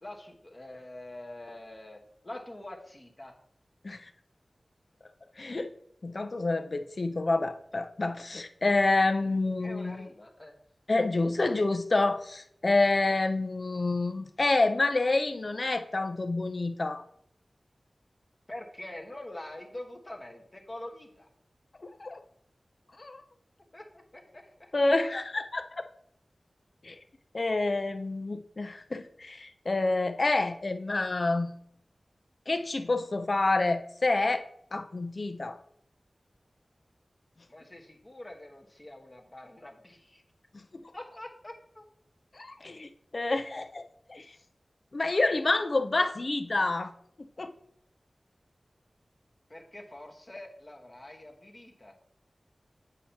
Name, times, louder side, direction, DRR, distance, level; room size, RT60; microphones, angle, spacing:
voice 1, 0.0-3.3 9.6-10.5 18.5-21.3 23.7-24.7 37.5-40.2 40.9-41.8 49.5-51.9, left 1 dB, 30° left, 1 dB, 1.2 m, -45 dB
voice 2, 5.4-5.7 6.0-10.0 10.9-17.0 22.0-22.2 23.0-23.2 24.7-25.9 26.8-27.0 27.3-31.5 32.5-35.6 40.5-40.8 42.3-44.3 44.9-46.9 47.2-47.5, left 2 dB, 55° left, 8 dB, 0.6 m, -28 dB
8.3 x 2.8 x 5.6 m, 0.68 s
wide cardioid pair, 55°, 0 cm